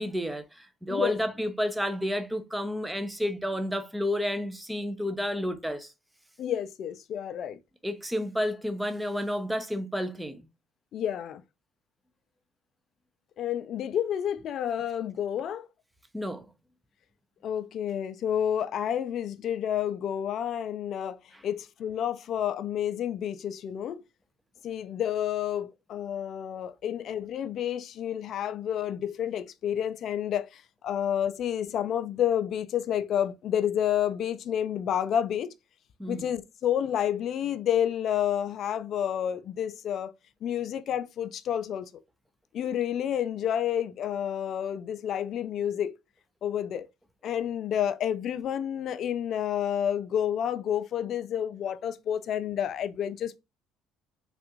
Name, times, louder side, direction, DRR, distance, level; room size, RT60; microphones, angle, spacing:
voice 1, 0.0-5.9 7.8-10.5 16.1-16.5 36.0-36.3, equal, 5° right, 0.6 m, -31 dB
voice 2, 6.4-7.6 10.9-11.4 13.4-15.7 17.4-21.2 21.4-24.0 24.6-35.5 36.1-40.1 40.4-41.9 42.5-45.9 46.4-46.9 47.2-53.4, left 9 dB, 60° left, 0.4 m, -30 dB
3.3 x 2.5 x 3.0 m
supercardioid pair, 80°, 0 cm